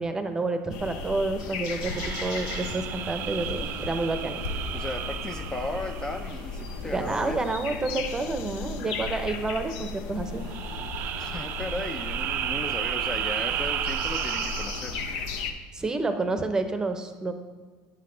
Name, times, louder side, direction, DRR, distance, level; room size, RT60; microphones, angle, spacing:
voice 1, 0.0-4.4 6.8-10.4 15.7-17.3, right 3 dB, 15° right, 8 dB, 0.7 m, -29 dB
sound 1, 0.7-15.5, left 3 dB, 80° left, 0.7 m, -35 dB
sound 2, 1.8-6.6 10.4-15.1, right 11 dB, 55° right, 0.4 m, -33 dB
voice 2, 4.7-7.4 11.1-15.0, left 2 dB, 20° left, 6 dB, 0.4 m, -35 dB
8.9 x 5.7 x 3.8 m, 1.5 s
supercardioid pair, 105°, 4 cm